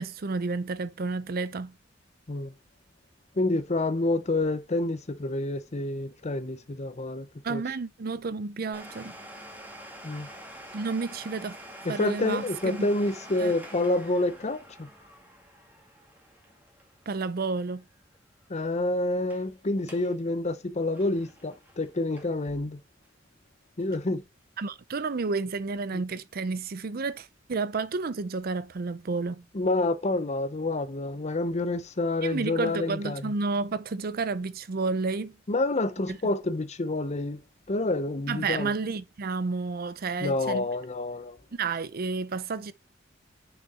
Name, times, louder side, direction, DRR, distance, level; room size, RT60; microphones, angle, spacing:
voice 1, 0.0-1.7 7.4-9.2 10.7-11.6 11.9-12.9 13.4-13.5 17.1-17.8 24.6-29.4 32.2-35.4 36.1-36.2 38.3-40.7 41.5-42.7, right 4 dB, 50° right, 0.6 m, -31 dB
voice 2, 3.3-7.6 10.0-10.3 11.8-14.9 18.5-22.8 23.8-24.2 25.9-26.0 29.5-33.3 35.5-37.4 37.7-38.7 40.2-41.4, left 2 dB, 35° left, 0.7 m, -28 dB
Domestic sounds home sounds, 8.7-18.2 18.4-18.5 19.1-19.5 19.8-20.1 20.5-22.5 23.0-23.1 23.8-23.9, right 1 dB, 10° right, 1.9 m, -47 dB
6.5 x 6.1 x 4.1 m
head